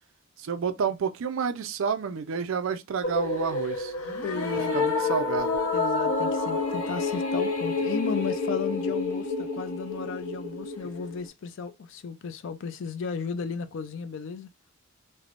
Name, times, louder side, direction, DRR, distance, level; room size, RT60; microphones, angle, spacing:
voice 1, 0.4-3.9 4.7-5.5, right 6 dB, 60° right, 0.4 m, -29 dB
sound 1, 3.0-11.3, left 3 dB, 85° left, 0.8 m, -28 dB
voice 2, 4.2-4.7 5.7-14.5, left 6 dB, 60° left, 0.4 m, -34 dB
3.2 x 2.1 x 2.4 m
head